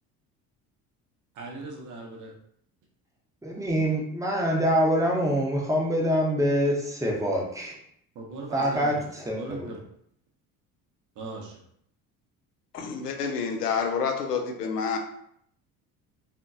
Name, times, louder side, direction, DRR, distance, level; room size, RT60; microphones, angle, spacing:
voice 1, 1.3-2.3 8.1-9.0 9.4-9.9 11.2-11.6, right 2 dB, 40° right, 0 dB, 0.9 m, -39 dB
voice 2, 3.4-7.7 8.5-9.7, equal, 5° right, -2 dB, 0.7 m, -25 dB
voice 3, 12.7-15.0, left 6 dB, 85° left, 5 dB, 0.5 m, -28 dB
3.6 x 2.5 x 2.4 m, 0.69 s
figure-of-eight pair, 55°, 46 cm